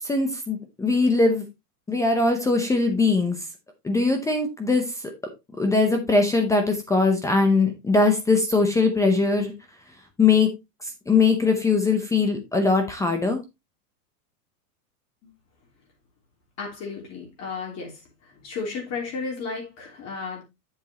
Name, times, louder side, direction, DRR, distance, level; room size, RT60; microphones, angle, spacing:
voice 1, 0.0-1.5 1.9-3.4 3.8-4.9 5.6-9.5 10.2-10.5 10.8-13.4, left 3 dB, 5° left, 0.6 m, -21 dB
voice 2, 16.6-18.0 18.4-20.4, left 4 dB, 30° left, 3.0 m, -33 dB
8.0 x 7.3 x 2.8 m
supercardioid pair, 150°, 48 cm